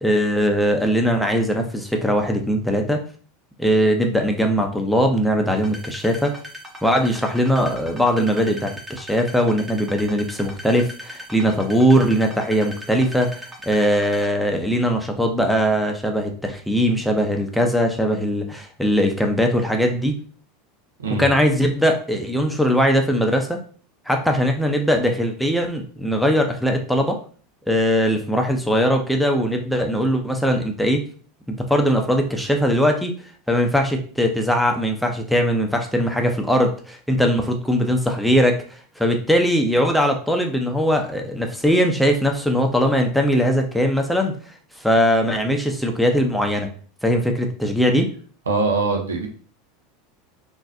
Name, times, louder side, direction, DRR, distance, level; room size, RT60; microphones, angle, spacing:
voice 1, 0.0-3.0 3.6-6.4 6.8-13.3 13.7-20.1 21.1-23.6 24.1-27.2 27.7-31.0 31.5-33.1 33.5-44.3 44.8-46.7 47.0-48.1, equal, ahead, 3 dB, 0.6 m, -20 dB
sound 1, 5.5-14.3, equal, 15° right, 1.0 m, -38 dB
voice 2, 48.5-49.3, right 3 dB, 85° right, 2 dB, 0.6 m, -22 dB
3.8 x 2.6 x 2.6 m, 0.43 s
hypercardioid pair, 85°, 0 cm